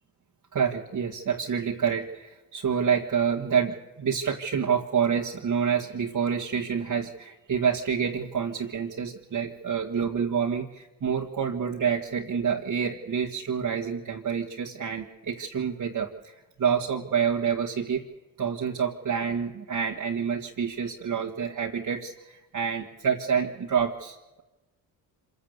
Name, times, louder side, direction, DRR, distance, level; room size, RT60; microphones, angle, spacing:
voice 1, 0.5-18.0 18.4-24.4, right 7 dB, 45° right, -2 dB, 2.1 m, -28 dB
26.0 x 16.0 x 8.3 m, 1.1 s
cardioid pair, 75°, 44 cm